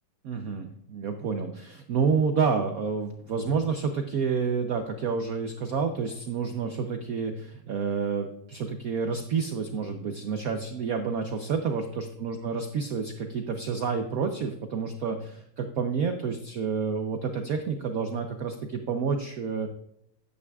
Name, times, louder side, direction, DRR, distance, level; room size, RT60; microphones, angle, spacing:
voice 1, 0.2-19.7, right 5 dB, 65° right, 6 dB, 0.9 m, -29 dB
11.0 x 9.2 x 2.3 m, 0.77 s
omnidirectional pair, 2.2 m